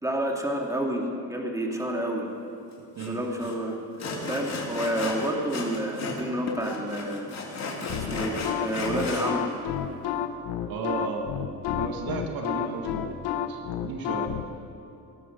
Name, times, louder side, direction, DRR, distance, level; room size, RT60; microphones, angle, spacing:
voice 1, 0.0-2.3 3.1-3.8 4.3-7.3 8.0-9.5, right 1 dB, 10° right, 0 dB, 2.6 m, -29 dB
Sawing, 3.0-3.1 3.4-3.5 4.0-6.2 6.5-9.3, left 3 dB, 45° left, 3.0 m, -34 dB
sound 1, 7.9-14.4, left 10 dB, 80° left, 1.0 m, -30 dB
voice 2, 10.7-14.4, right 4 dB, 70° right, 3 dB, 1.8 m, -35 dB
18.0 x 13.0 x 5.3 m, 2.9 s
cardioid pair, 85°, 37 cm